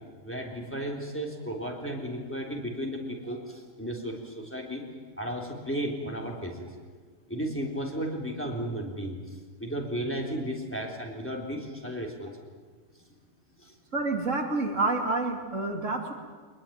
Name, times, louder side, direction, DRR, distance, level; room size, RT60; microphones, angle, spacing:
voice 1, 0.2-4.8 5.2-6.7 7.3-9.2 9.6-12.3 13.6-13.7, equal, 10° left, 0 dB, 3.6 m, -34 dB
voice 2, 13.9-16.1, right 3 dB, 70° right, 3 dB, 2.9 m, -28 dB
23.5 x 21.5 x 9.1 m, 1.5 s
omnidirectional pair, 1.4 m